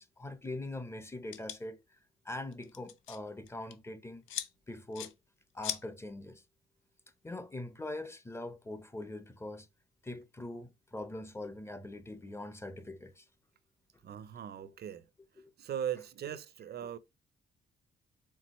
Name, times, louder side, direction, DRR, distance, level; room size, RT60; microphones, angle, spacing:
voice 1, 0.0-2.0 2.2-4.2 4.7-5.1 5.5-6.4 7.2-9.7 10.0-13.2 14.6-14.7 15.4-15.5 16.8-16.9, left 2 dB, 15° left, 0.7 m, -42 dB
sound 1, 1.3-1.6 2.5-3.2 3.5-3.7 4.3-4.5 4.9-5.1 5.6-5.8, left 11 dB, 85° left, 0.6 m, -38 dB
voice 2, 14.0-15.1 15.6-17.0, right 9 dB, 55° right, 0.6 m, -39 dB
4.6 x 3.6 x 3.0 m
cardioid pair, 90°, 20 cm